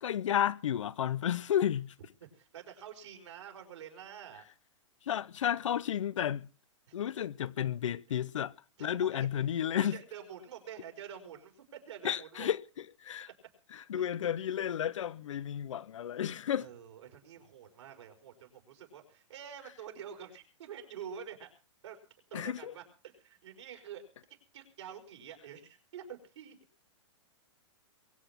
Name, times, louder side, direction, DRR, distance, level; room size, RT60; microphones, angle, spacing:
voice 1, 0.0-1.9 5.0-6.5 6.9-8.5 8.8-10.0 12.0-13.3 13.7-16.7 22.3-22.7, left 10 dB, 85° left, 0.8 m, -32 dB
voice 2, 2.2-4.4 6.9-7.0 8.8-9.2 9.7-12.5 16.6-21.5 21.8-22.0 22.3-24.0 24.5-26.6, right 8 dB, 70° right, 4.9 m, -47 dB
23.0 x 8.2 x 5.9 m
hypercardioid pair, 155°, 16 cm